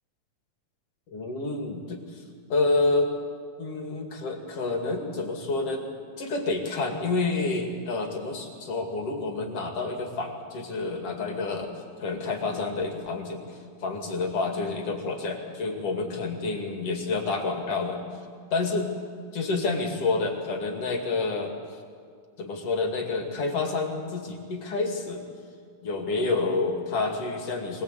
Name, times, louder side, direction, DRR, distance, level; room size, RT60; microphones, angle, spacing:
voice 1, 1.1-2.2 2.5-3.1 3.6-5.8 6.2-11.7 12.0-18.0 18.5-18.9 19.3-21.5 22.4-25.2 25.8-27.8, left 3 dB, 55° left, 3 dB, 3.3 m, -28 dB
24.5 x 19.5 x 8.2 m, 2.1 s
omnidirectional pair, 3.3 m